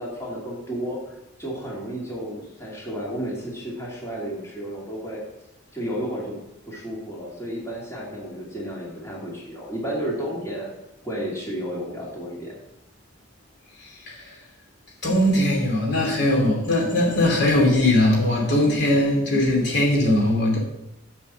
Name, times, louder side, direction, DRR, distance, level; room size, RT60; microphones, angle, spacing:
voice 1, 0.0-5.2 5.7-6.4 6.7-10.7 11.0-12.6, equal, 15° left, -4 dB, 2.3 m, -32 dB
voice 2, 13.8-14.4 15.0-20.6, left 1 dB, 60° left, -1 dB, 2.7 m, -20 dB
7.1 x 6.9 x 7.3 m, 0.87 s
head